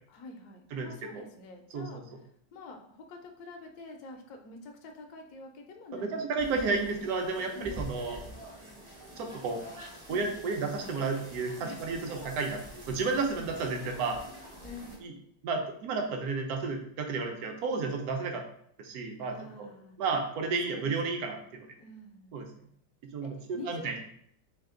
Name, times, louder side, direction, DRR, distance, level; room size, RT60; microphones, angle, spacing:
voice 1, 0.1-2.0 2.5-6.7 7.0-7.1 7.5-7.9 10.1-10.3 11.6-12.1 14.6-15.1 19.2-19.9 20.6-21.2 21.8-22.3 23.2-23.9, left 2 dB, 70° left, 3 dB, 0.9 m, -47 dB
voice 2, 0.7-1.2 1.7-1.9 5.9-8.2 9.2-9.6 10.1-12.6 12.9-14.2 15.0-15.1 15.4-18.4 18.8-19.7 20.0-21.7 22.3-22.4 23.1-23.9, right 4 dB, 70° right, 3 dB, 0.9 m, -32 dB
sound 1, 6.4-15.0, right 1 dB, 40° right, 0.4 m, -46 dB
3.3 x 2.9 x 3.6 m, 0.68 s
omnidirectional pair, 2.1 m